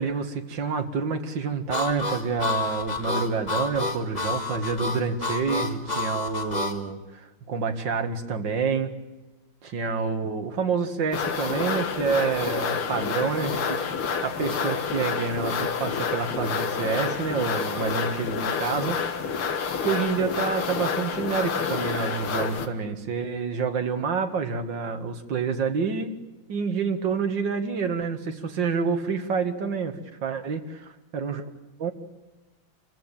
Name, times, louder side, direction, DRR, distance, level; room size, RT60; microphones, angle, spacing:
voice 1, 0.0-8.9 9.6-13.8 14.2-19.4 19.8-26.1 26.5-30.9 31.1-31.5 31.8-31.9, right 5 dB, 60° right, 7 dB, 2.4 m, -28 dB
Harmonica, 1.7-6.8, left 3 dB, 20° left, 1.5 m, -29 dB
sound 1, 11.1-22.7, left 6 dB, 85° left, 2.5 m, -28 dB
27.0 x 15.5 x 8.9 m, 1.1 s
omnidirectional pair, 2.3 m